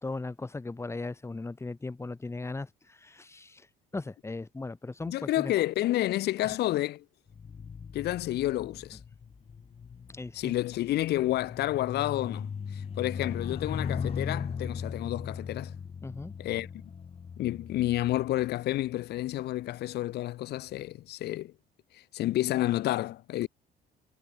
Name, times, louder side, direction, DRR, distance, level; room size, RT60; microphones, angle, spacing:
voice 1, 0.0-3.7 3.9-5.5 6.4-6.5 10.1-10.5 16.0-16.3, left 3 dB, 15° left, 4.2 m, -38 dB
voice 2, 5.1-7.0 7.9-9.0 10.3-15.7 16.4-16.7 17.4-21.5 21.9-23.5, left 15 dB, 75° left, 7.3 m, -30 dB
sound 1, 7.3-18.9 19.7-20.0, left 6 dB, 35° left, 4.0 m, -38 dB
cardioid pair, 110°, 17 cm